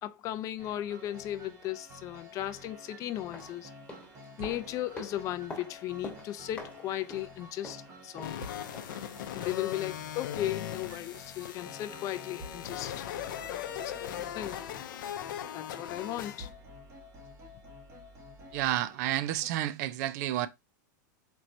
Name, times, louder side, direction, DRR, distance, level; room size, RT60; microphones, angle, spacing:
voice 1, 0.0-3.7 4.4-8.5 9.3-13.0 13.5-14.6 15.5-16.5, left 13 dB, 30° left, 0.4 m, -36 dB
sound 1, 0.6-19.5, equal, 25° right, 1.0 m, -50 dB
sound 2, 3.1-9.1 9.4-9.5, left 2 dB, 10° left, 1.1 m, -47 dB
sound 3, 8.2-16.5, left 11 dB, 80° left, 0.6 m, -39 dB
voice 2, 18.5-20.5, right 13 dB, 55° right, 0.4 m, -30 dB
4.4 x 3.0 x 2.6 m
supercardioid pair, 145°, 11 cm